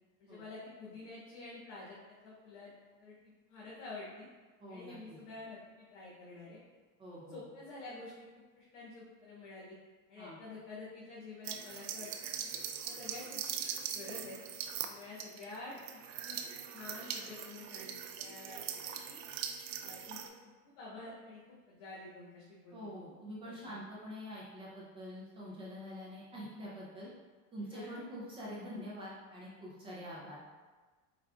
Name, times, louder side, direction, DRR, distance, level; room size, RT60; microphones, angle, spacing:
voice 1, 0.2-2.7 3.0-4.2 4.7-6.6 7.3-9.7 10.1-12.1 12.8-14.4 14.8-19.2 19.8-22.9 23.4-23.7 27.7-28.0, left 3 dB, 70° left, -8 dB, 1.3 m, -49 dB
voice 2, 4.6-5.2 7.0-7.4 10.2-10.4 22.7-27.1 27.5-30.4, equal, 15° right, -7 dB, 0.4 m, -45 dB
sound 1, 11.4-20.3, right 8 dB, 85° right, 0.5 m, -41 dB
4.8 x 3.7 x 2.2 m, 1.3 s
supercardioid pair, 175°, 38 cm